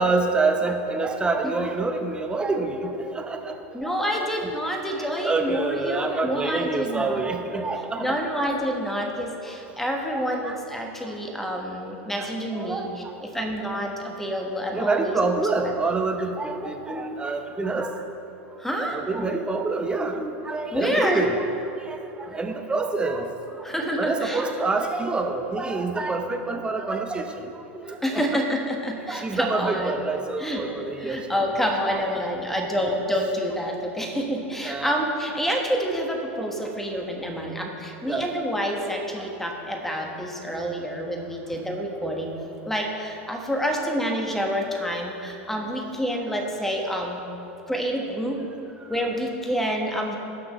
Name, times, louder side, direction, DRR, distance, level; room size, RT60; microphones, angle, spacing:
voice 1, 0.0-3.6 3.8-3.9 4.2-4.3 5.0-8.2 10.1-10.6 12.2-12.9 14.7-18.0 18.8-21.4 21.9-23.3 24.0-27.3 27.7-28.4 29.1-31.2 31.9-32.7 34.6-34.9 38.1-38.3 39.2-39.3, right 3 dB, 15° right, 4 dB, 0.9 m, -27 dB
voice 2, 3.7-7.2 8.0-15.7 18.6-19.0 20.7-21.2 23.6-24.4 28.0-29.9 30.4-30.6 31.0-42.3 42.6-47.2 47.7-48.4 48.9-50.2, equal, 5° left, 1 dB, 1.4 m, -28 dB
18.0 x 6.1 x 3.2 m, 2.9 s
hypercardioid pair, 105°, 7 cm